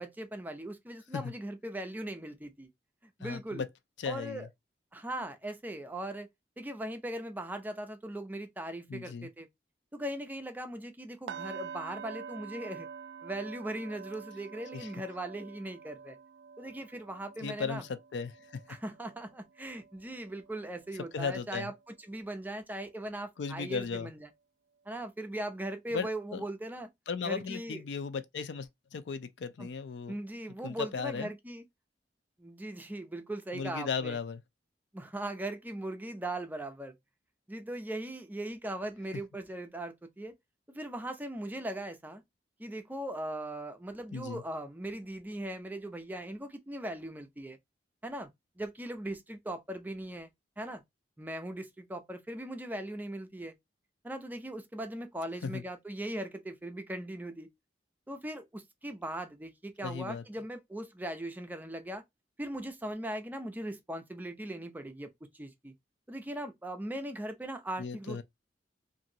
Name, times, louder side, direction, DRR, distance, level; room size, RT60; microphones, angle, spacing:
voice 1, 0.0-2.7 3.2-3.6 4.1-4.5 4.9-6.3 6.6-9.5 9.9-12.9 13.2-16.2 16.6-17.9 18.7-24.3 24.9-26.9 27.2-27.8 29.6-29.7 30.1-31.6 32.4-34.2 34.9-36.9 37.5-40.3 40.7-42.2 42.6-47.6 48.0-48.3 48.6-50.3 50.6-50.8 51.2-53.5 54.0-57.5 58.1-62.0 62.4-65.1 65.3-65.7 66.1-68.2, right 1 dB, 10° right, 0.4 m, -39 dB
voice 2, 3.2-3.7 4.0-4.5 8.9-9.3 14.7-14.9 17.4-18.6 21.1-21.7 23.4-24.1 25.9-26.4 27.1-30.1 30.6-31.3 33.5-34.4 44.1-44.4 55.4-55.6 59.8-60.2 67.8-68.2, left 5 dB, 85° left, 0.4 m, -36 dB
sound 1, 11.3-21.2 21.5-21.8 22.3-22.4, right 7 dB, 80° right, 0.3 m, -47 dB
2.9 x 2.6 x 2.7 m
head